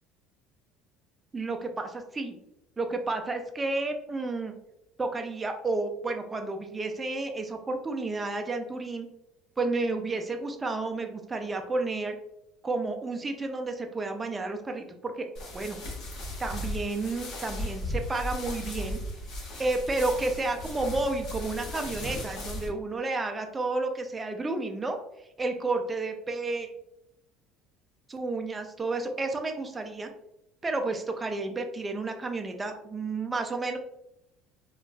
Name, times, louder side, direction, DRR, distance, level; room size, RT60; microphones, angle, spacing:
voice 1, 1.3-2.4 2.8-4.5 5.0-9.1 9.6-12.2 12.6-15.3 15.5-15.8 16.4-19.0 19.6-25.0 25.4-26.7 28.1-30.1 30.6-33.8, right 3 dB, 15° right, 5 dB, 0.3 m, -31 dB
sound 1, 15.3-22.7, left 1 dB, 50° left, 1.0 m, -36 dB
3.8 x 2.3 x 2.3 m, 0.84 s
cardioid pair, 155°, 0 cm